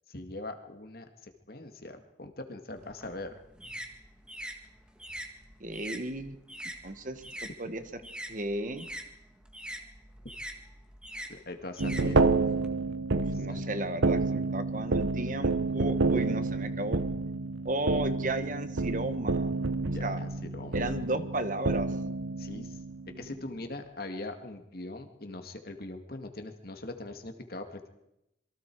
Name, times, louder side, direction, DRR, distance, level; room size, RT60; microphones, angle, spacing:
voice 1, 0.1-3.4 11.3-12.2 13.1-13.6 19.9-20.9 22.4-22.8 23.2-27.9, left 2 dB, 50° left, 6 dB, 2.1 m, -42 dB
sound 1, 2.8-7.5 7.8-12.7, equal, 5° right, 1.8 m, -43 dB
voice 2, 5.6-6.4 6.8-7.8 8.3-8.9 13.1-17.0 17.6-19.5 20.0-20.2 20.7-21.9, right 1 dB, 45° right, 10 dB, 1.3 m, -34 dB
sound 2, 11.8-23.4, right 3 dB, 80° right, 0.9 m, -29 dB
27.0 x 22.5 x 4.7 m, 0.86 s
head